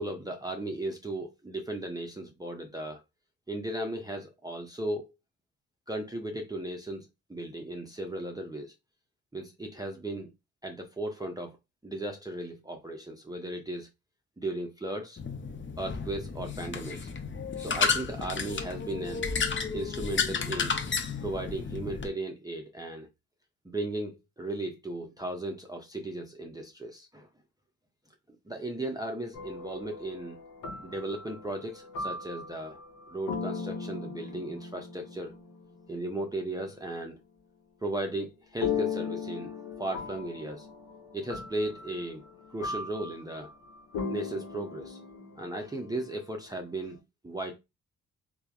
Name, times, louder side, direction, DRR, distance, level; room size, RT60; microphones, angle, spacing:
voice 1, 0.0-3.0 3.5-5.1 5.9-8.7 9.3-10.3 10.6-11.6 11.8-13.9 14.4-15.2 15.8-17.1 17.6-19.3 19.7-20.8 21.2-23.1 23.6-27.3 28.5-30.4 30.8-32.8 33.1-35.3 35.9-37.2 37.8-40.7 41.1-42.2 42.5-43.5 44.1-45.0 45.4-47.0 47.2-47.6, right 1 dB, 10° right, 0.6 m, -36 dB
sound 1, 15.2-22.1, left 5 dB, 30° left, 0.6 m, -32 dB
sound 2, 29.3-36.4 38.6-46.3, left 5 dB, 65° left, 0.9 m, -38 dB
3.3 x 2.1 x 2.3 m
supercardioid pair, 55°, 36 cm